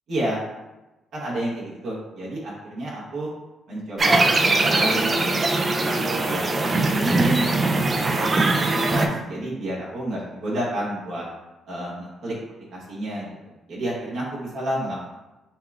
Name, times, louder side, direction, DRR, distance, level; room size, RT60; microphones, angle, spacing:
voice 1, 0.1-0.4 1.1-3.3 3.7-4.3 4.8-5.3 5.7-7.5 7.8-11.2 11.7-12.3 12.7-15.0, right 1 dB, 75° right, -6 dB, 1.0 m, -30 dB
sound 1, 4.0-9.1, right 2 dB, 35° right, 0.4 m, -21 dB
5.4 x 2.3 x 2.4 m, 1.0 s
cardioid pair, 90°, 0 cm